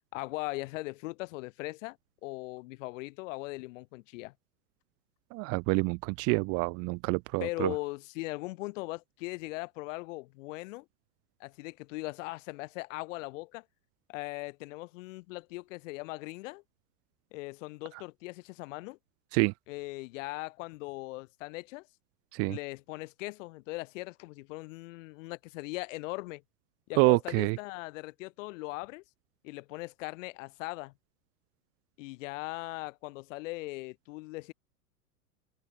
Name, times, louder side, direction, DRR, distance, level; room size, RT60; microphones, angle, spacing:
voice 1, 0.1-4.3 7.4-10.8 11.4-13.6 14.1-16.6 17.3-19.0 19.7-21.9 22.5-26.4 26.9-29.0 29.4-30.9 32.0-34.5, left 22 dB, 55° left, 4.6 m, -39 dB
voice 2, 5.3-7.7 19.3-19.5 22.3-22.6 27.0-27.6, right 31 dB, 30° right, 0.6 m, -27 dB
hypercardioid pair, 100°, 46 cm